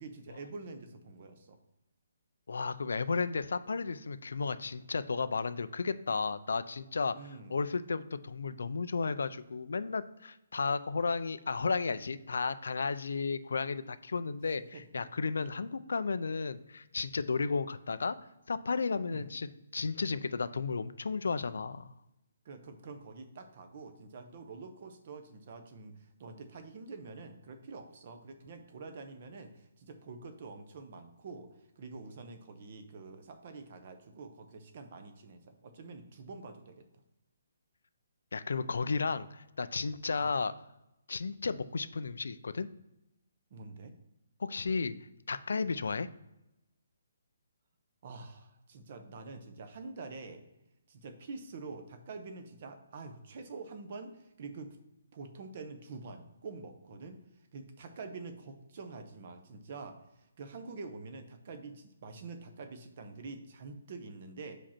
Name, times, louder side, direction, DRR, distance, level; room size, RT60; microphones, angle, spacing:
voice 1, 0.0-1.6 7.1-7.6 14.7-15.1 19.1-19.3 22.4-31.5 31.8-36.9 40.2-40.4 43.5-43.9 48.0-50.4 50.9-54.8 55.1-57.2 57.5-60.0 60.4-64.6, right 3 dB, 35° right, 8 dB, 0.8 m, -46 dB
voice 2, 2.5-7.2 7.5-18.2 18.5-21.9 38.3-40.5 41.1-42.7 44.4-44.9 45.3-46.1, left 4 dB, 75° left, 13 dB, 0.4 m, -33 dB
5.8 x 5.1 x 4.4 m, 0.92 s
hypercardioid pair, 175°, 0 cm